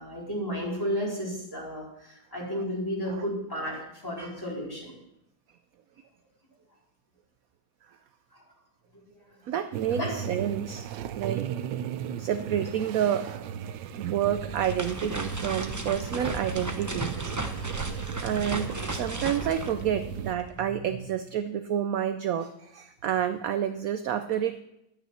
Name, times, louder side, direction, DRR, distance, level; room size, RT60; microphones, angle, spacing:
voice 1, 0.0-4.9 8.9-9.0 9.9-10.1, equal, 10° left, -5 dB, 4.4 m, -33 dB
voice 2, 9.5-10.9 11.1-11.5 12.2-13.5 14.0-17.1 18.2-24.6, right 9 dB, 65° right, 10 dB, 0.9 m, -29 dB
sound 1, 9.7-20.3, right 8 dB, 85° right, 1.3 m, -36 dB
sound 2, 14.4-20.6, right 1 dB, 20° right, 0.5 m, -36 dB
11.0 x 9.4 x 5.8 m, 0.84 s
omnidirectional pair, 2.0 m